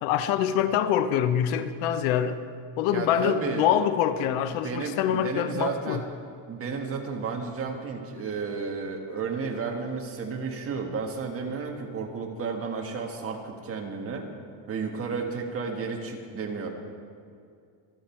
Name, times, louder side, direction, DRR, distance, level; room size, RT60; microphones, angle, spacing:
voice 1, 0.0-2.4 2.8-6.0, left 9 dB, 85° left, 11 dB, 1.0 m, -25 dB
voice 2, 2.9-3.6 4.6-6.0 6.5-14.3 14.7-16.7, right 5 dB, 30° right, 2 dB, 1.6 m, -32 dB
25.5 x 9.2 x 4.5 m, 2.3 s
cardioid pair, 165°, 46 cm